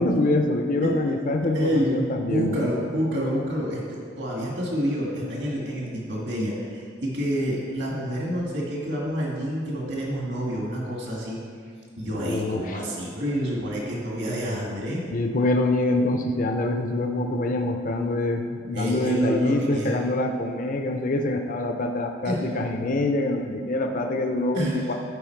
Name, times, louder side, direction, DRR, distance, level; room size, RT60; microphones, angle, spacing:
voice 1, 0.0-2.6 12.0-12.8 15.1-24.9, left 2 dB, 45° left, 4 dB, 0.5 m, -25 dB
voice 2, 1.5-11.4 12.0-15.0 18.7-20.0 22.2-22.5 24.5-24.9, equal, 65° right, -3 dB, 1.9 m, -28 dB
12.5 x 4.9 x 4.5 m, 2.1 s
head